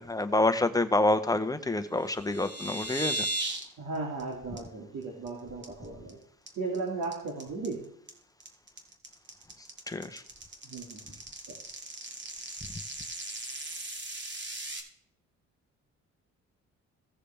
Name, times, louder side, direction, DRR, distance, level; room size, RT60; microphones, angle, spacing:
voice 1, 0.0-3.3 9.9-10.2, left 2 dB, 10° left, 0.9 m, -27 dB
sound 1, 2.0-3.6 3.9-4.2 4.6-4.7 5.0-5.3 5.6-6.1 6.5-14.8, right 2 dB, 35° right, 2.4 m, -37 dB
voice 2, 3.8-6.2 6.6-7.9 10.7-11.2 11.5-11.6, right 3 dB, 70° right, 2.3 m, -36 dB
17.0 x 6.7 x 3.4 m
cardioid pair, 90°, 30 cm